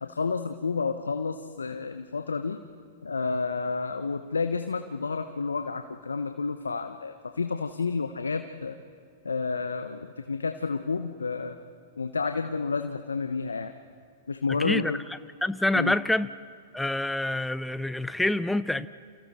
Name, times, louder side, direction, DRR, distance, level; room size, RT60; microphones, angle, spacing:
voice 1, 0.0-2.6 3.0-8.8 9.2-11.6 12.0-13.7 14.3-15.0 15.7-16.0, left 4 dB, 85° left, 8 dB, 1.0 m, -30 dB
voice 2, 14.5-14.9 15.4-16.3 16.7-18.9, left 1 dB, 5° left, 15 dB, 0.7 m, -26 dB
29.0 x 28.0 x 4.4 m, 2.2 s
figure-of-eight pair, 105°, 0 cm